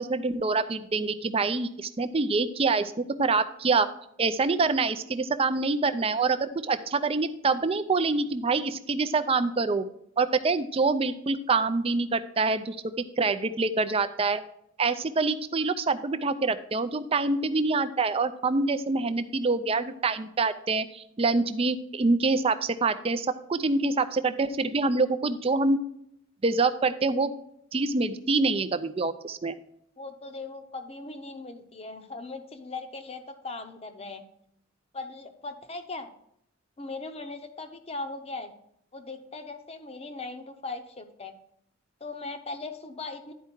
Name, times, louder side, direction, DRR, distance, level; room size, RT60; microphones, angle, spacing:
voice 1, 0.0-2.9 3.2-3.9 4.2-9.8 10.2-12.8 13.2-14.4 14.8-25.8 26.4-27.3 27.7-29.5, right 3 dB, 30° right, 11 dB, 0.4 m, -26 dB
voice 2, 30.0-34.2 34.9-36.1 36.8-38.5 38.9-41.3 42.0-43.3, left 3 dB, 30° left, 7 dB, 0.7 m, -39 dB
11.0 x 4.7 x 4.5 m, 0.72 s
head